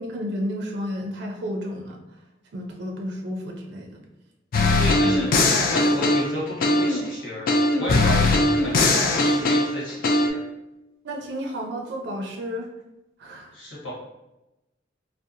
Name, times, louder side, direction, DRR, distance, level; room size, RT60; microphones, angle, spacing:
voice 1, 0.0-2.0 2.5-4.0 5.0-5.2 11.0-12.7 13.2-13.5, equal, 65° right, 1 dB, 0.4 m, -31 dB
sound 1, 4.5-7.1 7.5-10.3, left 2 dB, 50° left, 0.3 m, -20 dB
voice 2, 4.8-5.3 5.7-10.4 13.5-13.9, left 1 dB, 80° left, -7 dB, 1.2 m, -33 dB
2.7 x 2.0 x 2.5 m, 0.98 s
head